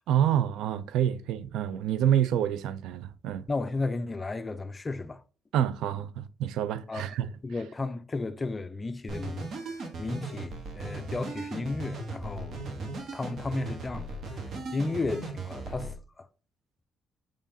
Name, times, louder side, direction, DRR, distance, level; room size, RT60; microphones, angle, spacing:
voice 1, 0.1-3.5 5.5-7.3, right 10 dB, 90° right, 0.3 m, -27 dB
voice 2, 3.5-5.2 6.9-7.0 7.4-9.5 10.0-14.4 14.7-16.3, left 3 dB, 25° left, 0.4 m, -34 dB
sound 1, 9.1-15.9, right 3 dB, 60° right, 1.1 m, -38 dB
5.1 x 3.5 x 2.7 m
cardioid pair, 90°, 0 cm